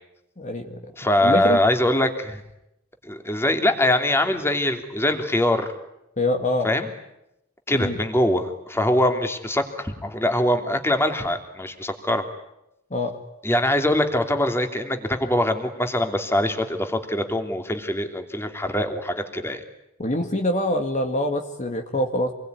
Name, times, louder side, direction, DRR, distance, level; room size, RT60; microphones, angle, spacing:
voice 1, 0.4-0.8 1.2-1.6 6.2-6.7 7.7-8.1 12.9-13.1 20.0-22.3, left 1 dB, 40° left, 4 dB, 2.2 m, -24 dB
voice 2, 1.0-2.4 3.0-5.7 6.6-6.9 7.7-12.2 13.4-19.6, left 1 dB, 10° left, 6 dB, 3.0 m, -23 dB
28.0 x 22.0 x 9.7 m, 0.85 s
head